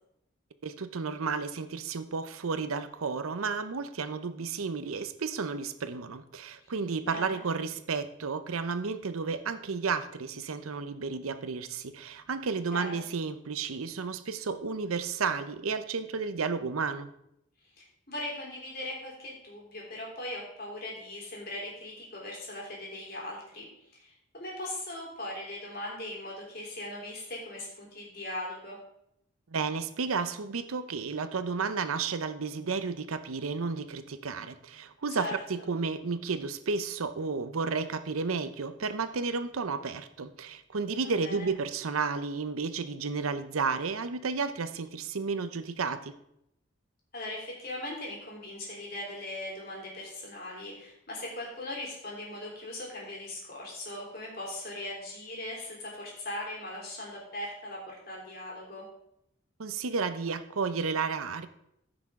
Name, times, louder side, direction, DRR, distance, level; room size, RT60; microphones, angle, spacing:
voice 1, 0.6-17.1 29.5-46.1 59.6-61.5, right 4 dB, 85° right, 11 dB, 0.7 m, -32 dB
voice 2, 7.0-7.4 12.7-13.0 17.8-23.7 23.9-28.8 35.2-35.4 41.0-41.5 47.1-58.9, left 1 dB, 45° left, -3 dB, 3.4 m, -39 dB
14.5 x 6.1 x 3.7 m, 0.78 s
head